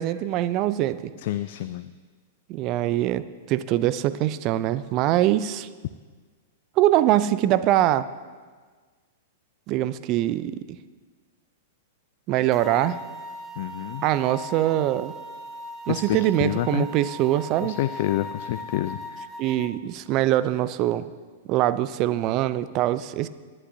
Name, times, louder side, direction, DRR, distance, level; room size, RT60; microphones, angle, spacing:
voice 1, 0.0-1.1 2.5-5.7 6.8-8.1 9.7-10.8 12.3-13.0 14.0-15.1 15.9-17.8 19.4-21.1 21.5-23.3, right 13 dB, 40° right, 15 dB, 0.5 m, -23 dB
voice 2, 1.2-1.9 13.6-14.0 15.9-16.9 17.6-19.3, left 14 dB, 55° left, 12 dB, 0.4 m, -28 dB
sound 1, 12.5-19.7, left 1 dB, 5° left, 1.4 m, -39 dB
19.0 x 11.0 x 2.7 m, 1.5 s
figure-of-eight pair, 105°, 0 cm